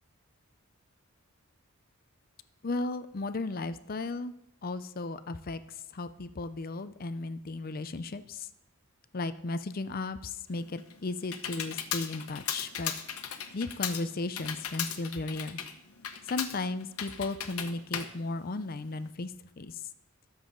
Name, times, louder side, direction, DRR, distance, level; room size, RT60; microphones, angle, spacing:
voice 1, 2.6-4.3 4.6-5.6 5.9-8.5 9.1-12.9 13.5-15.6 16.3-19.8, left 3 dB, 40° left, 12 dB, 0.5 m, -35 dB
Computer keyboard, 10.5-19.1, left 8 dB, 85° left, 1.2 m, -37 dB
21.0 x 7.2 x 3.9 m, 0.79 s
head